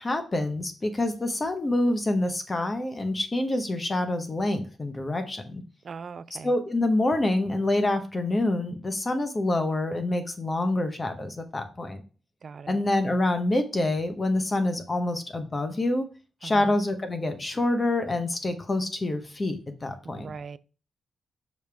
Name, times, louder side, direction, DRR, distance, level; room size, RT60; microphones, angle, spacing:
voice 1, 0.0-5.6 6.4-12.0 12.7-16.1 16.4-20.3, left 2 dB, 30° left, 1.0 m, -26 dB
voice 2, 5.8-6.5 12.4-12.8 16.4-16.8 20.0-20.6, right 5 dB, 55° right, 0.4 m, -40 dB
6.1 x 5.2 x 3.4 m
cardioid pair, 80°, 0 cm